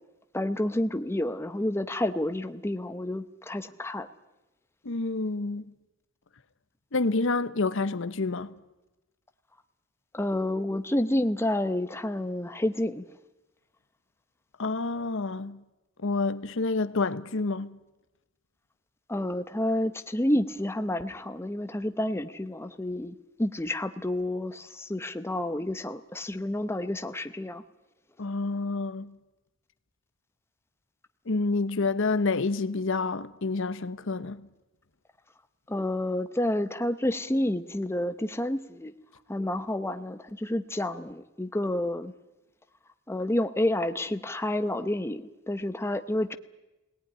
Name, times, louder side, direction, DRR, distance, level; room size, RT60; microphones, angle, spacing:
voice 1, 0.3-4.1 10.1-13.1 19.1-27.6 35.7-38.9 39.3-42.1 43.1-46.3, left 1 dB, 10° left, 0.8 m, -29 dB
voice 2, 4.8-5.7 6.9-8.5 14.6-15.6 16.0-17.8 28.2-29.1 31.3-34.5, left 3 dB, 65° left, 0.9 m, -28 dB
21.0 x 18.0 x 10.0 m
head